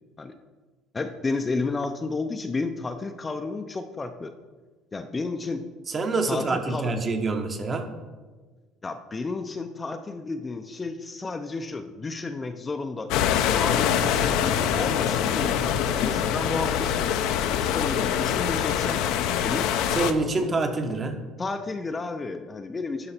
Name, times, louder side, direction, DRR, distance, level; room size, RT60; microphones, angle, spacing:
voice 1, 0.9-4.3 4.9-5.6 6.3-6.9 8.8-13.1 13.5-17.0 17.6-19.0 19.4-19.7 20.3-20.5 21.4-23.1, left 3 dB, 20° left, 7 dB, 0.5 m, -32 dB
voice 2, 5.9-7.9 19.9-21.2, right 3 dB, 30° right, 6 dB, 1.0 m, -26 dB
sound 1, 13.1-20.1, left 9 dB, 75° left, 0.6 m, -24 dB
11.5 x 4.9 x 4.3 m, 1.3 s
cardioid pair, 110°, 0 cm